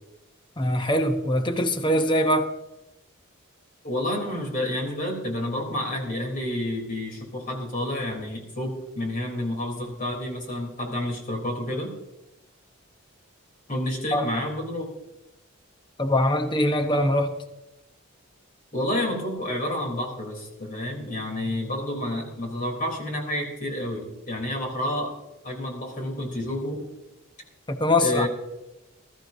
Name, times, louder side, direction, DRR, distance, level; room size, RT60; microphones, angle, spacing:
voice 1, 0.6-2.5 14.1-14.4 16.0-17.3 27.7-28.3, left 1 dB, 20° left, 0.9 m, -23 dB
voice 2, 3.8-11.9 13.7-14.9 18.7-25.1 25.4-26.9 27.8-28.3, left 1 dB, 40° left, 3.4 m, -29 dB
21.0 x 13.0 x 2.7 m
head